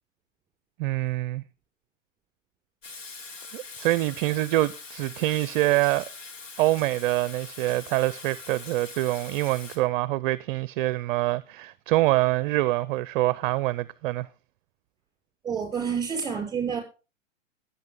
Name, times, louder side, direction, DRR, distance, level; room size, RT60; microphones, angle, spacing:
voice 1, 0.8-1.4 3.5-6.1 6.6-14.3, right 17 dB, 45° right, 0.6 m, -25 dB
Water tap faucet / Sink (filling or washing), 2.8-9.8, left 4 dB, 75° left, 6.3 m, -43 dB
voice 2, 15.4-16.8, right 6 dB, 10° right, 5.5 m, -28 dB
21.0 x 8.3 x 3.7 m
hypercardioid pair, 120°, 38 cm